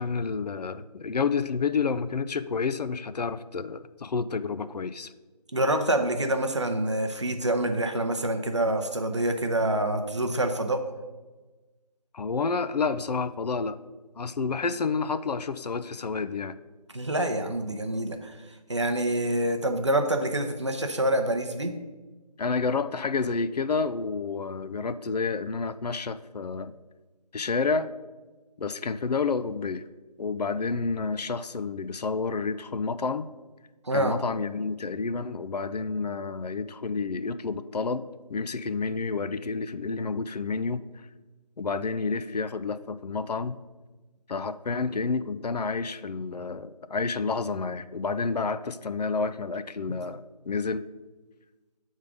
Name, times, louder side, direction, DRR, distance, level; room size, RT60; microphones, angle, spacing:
voice 1, 0.0-5.1 12.1-13.8 14.2-16.6 22.4-26.7 27.3-27.9 28.6-29.8 30.2-33.3 33.9-38.0 38.3-40.8 41.6-43.6 44.3-50.9, left 4 dB, 70° left, 13 dB, 0.4 m, -29 dB
voice 2, 5.5-10.8 16.9-18.3 18.7-21.7 33.9-34.2 49.9-50.0, right 1 dB, 45° right, 5 dB, 0.6 m, -26 dB
8.2 x 3.6 x 4.9 m, 1.2 s
figure-of-eight pair, 180°, 21 cm